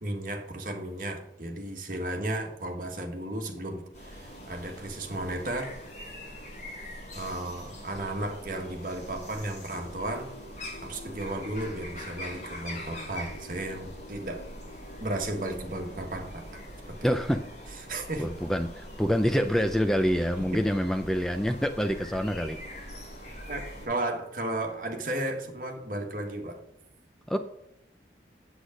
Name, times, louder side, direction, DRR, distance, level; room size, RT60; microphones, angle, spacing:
voice 1, 0.0-5.7 7.1-10.3 10.8-14.5 15.0-16.6 16.9-17.1 17.9-18.3 20.5-20.6 23.5-26.6, right 1 dB, 50° right, 3 dB, 1.6 m, -34 dB
sound 1, 3.9-23.9, equal, 40° left, 3.6 m, -43 dB
sound 2, 9.6-15.6, left 2 dB, 75° left, 2.2 m, -51 dB
voice 2, 17.0-17.4 18.2-22.9 27.3-27.4, equal, 5° left, 7 dB, 0.4 m, -26 dB
8.3 x 8.0 x 5.1 m, 0.82 s
head